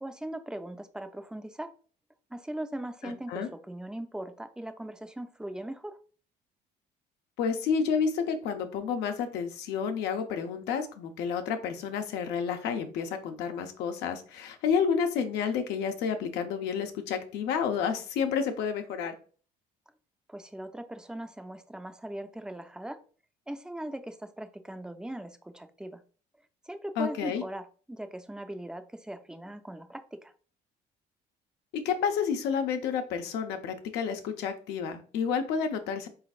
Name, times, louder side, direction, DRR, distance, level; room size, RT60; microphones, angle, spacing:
voice 1, 0.0-1.7 2.3-6.0 20.3-23.0 23.5-26.0 26.6-30.3, right 1 dB, 5° right, 9 dB, 0.4 m, -39 dB
voice 2, 3.0-3.5 7.4-19.2 27.0-27.4 31.7-36.1, left 6 dB, 85° left, 6 dB, 0.7 m, -30 dB
4.2 x 3.9 x 2.4 m, 0.40 s
cardioid pair, 110°, 17 cm